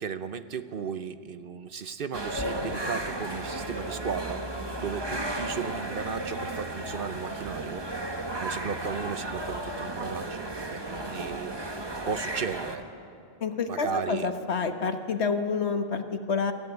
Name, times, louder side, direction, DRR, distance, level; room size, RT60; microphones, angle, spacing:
voice 1, 0.0-7.9 8.4-10.4 10.7-12.9 13.7-14.4, right 6 dB, 55° right, 11 dB, 0.9 m, -35 dB
sound 1, 2.1-12.8, right 1 dB, 25° right, 1.3 m, -34 dB
voice 2, 13.4-16.5, left 5 dB, 75° left, 7 dB, 1.5 m, -28 dB
23.5 x 15.0 x 9.7 m, 2.6 s
omnidirectional pair, 1.1 m